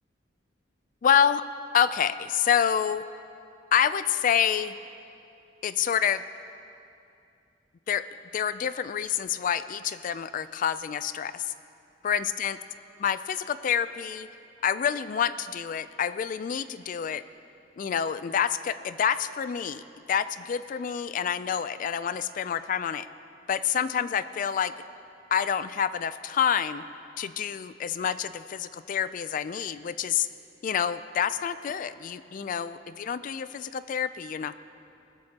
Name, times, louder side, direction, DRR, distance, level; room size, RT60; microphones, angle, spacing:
voice 1, 1.0-1.4 1.7-3.0 3.7-4.7 5.6-6.2 7.9-8.1 8.3-11.5 12.0-12.6 13.0-14.3 14.6-17.2 17.8-19.8 20.1-23.1 23.5-24.7 25.3-26.8 27.2-30.3 30.6-34.5, left 8 dB, 45° left, 14 dB, 0.3 m, -27 dB
19.5 x 14.0 x 2.9 m, 2.6 s
head